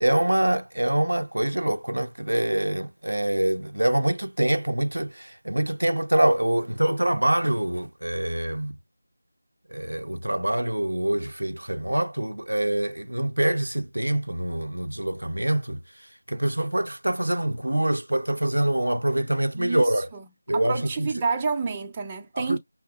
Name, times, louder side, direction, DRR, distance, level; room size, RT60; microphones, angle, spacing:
voice 1, 0.0-8.8 9.7-15.8 16.3-20.1 20.5-21.1 22.4-22.6, right 1 dB, 85° right, 0.5 m, -25 dB
voice 2, 19.5-20.3 20.5-22.6, right 4 dB, 15° right, 0.6 m, -29 dB
5.9 x 2.8 x 2.3 m
figure-of-eight pair, 165°, 0 cm